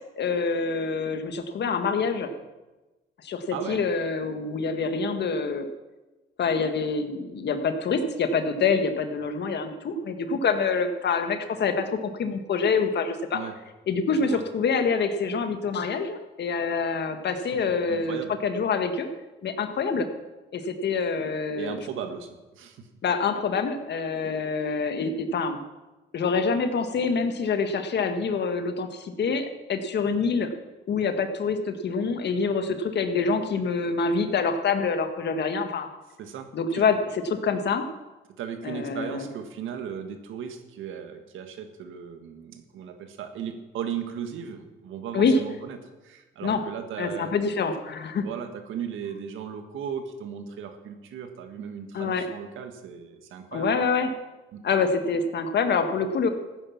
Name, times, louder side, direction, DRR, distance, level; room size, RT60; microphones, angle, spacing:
voice 1, 0.2-2.3 3.2-5.7 6.4-11.9 12.2-13.4 13.9-18.2 18.4-19.1 19.4-20.1 20.5-21.8 23.0-25.6 26.1-30.5 30.9-35.9 36.5-37.8 38.6-39.3 45.1-45.4 46.4-46.6 47.0-48.3 51.9-52.3 53.5-54.1 54.6-56.3, left 5 dB, 60° left, 7 dB, 1.6 m, -26 dB
voice 2, 3.5-3.8 13.3-13.6 14.1-14.4 17.9-18.3 21.6-22.3 22.5-22.9 32.7-32.8 36.2-36.8 38.4-45.8 46.0-47.3 48.2-53.7 54.5-54.6, right 8 dB, 85° right, 7 dB, 1.7 m, -36 dB
15.5 x 9.6 x 6.0 m, 1.1 s
cardioid pair, 90°, 20 cm